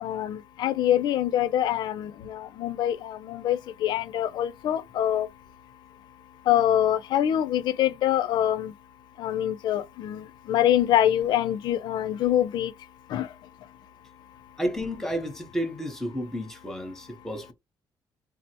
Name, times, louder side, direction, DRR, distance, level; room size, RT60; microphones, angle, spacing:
voice 1, 0.0-5.3 6.5-8.7 9.2-10.2 10.5-12.7 13.1-13.3, left 11 dB, 70° left, 0.4 m, -25 dB
voice 2, 14.6-17.5, equal, 5° left, 0.8 m, -31 dB
3.6 x 2.1 x 2.8 m
cardioid pair, 145°, 8 cm